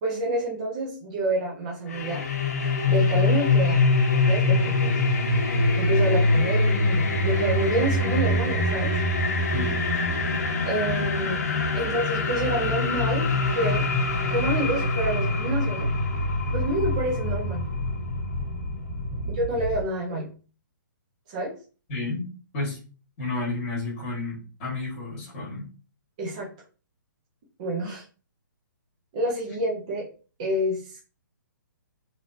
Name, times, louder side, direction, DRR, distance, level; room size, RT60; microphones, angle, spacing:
voice 1, 0.0-2.3 2.9-3.9 4.3-5.0 5.7-8.9 10.7-11.5 11.7-13.8 14.3-15.9 16.5-17.7 19.3-20.3 21.3-21.5 26.2-26.5 27.6-28.0 29.1-30.1 30.4-31.0, right 1 dB, 20° right, -3 dB, 0.6 m, -28 dB
sound 1, 1.9-19.8, left 2 dB, 45° left, 0.8 m, -24 dB
voice 2, 21.9-22.8 23.2-25.7, left 3 dB, 20° left, -5 dB, 1.3 m, -31 dB
3.2 x 2.6 x 2.5 m, 0.36 s
hypercardioid pair, 175°, 11 cm